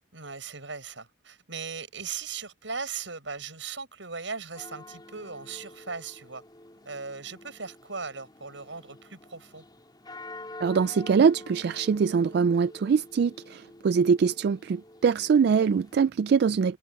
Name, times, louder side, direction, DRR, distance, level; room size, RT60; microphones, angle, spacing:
voice 1, 0.1-6.4 6.8-9.6, right 5 dB, 80° right, 6.5 m, -38 dB
sound 1, 4.5-16.1, left 2 dB, 25° left, 4.2 m, -47 dB
voice 2, 10.6-16.8, right 6 dB, 60° right, 0.3 m, -23 dB
head